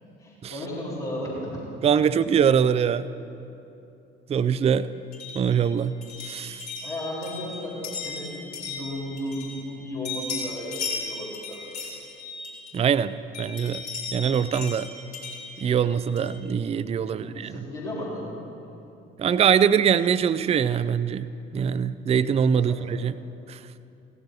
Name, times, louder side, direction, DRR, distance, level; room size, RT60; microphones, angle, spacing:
voice 1, 0.2-1.6 6.8-11.6 17.0-18.3 22.5-22.8, left 1 dB, 80° left, -11 dB, 2.7 m, -34 dB
voice 2, 1.8-3.1 4.3-4.9 5.3-5.9 6.2-6.7 12.7-13.8 14.1-14.9 15.6-17.7 19.2-21.3 21.5-23.1 23.5-23.6, right 7 dB, 20° right, 15 dB, 0.4 m, -23 dB
sound 1, 5.1-9.8 10.0-13.0 13.3-16.4, left 4 dB, 65° left, 3.7 m, -37 dB
17.0 x 15.0 x 3.0 m, 2.7 s
figure-of-eight pair, 45°, 30 cm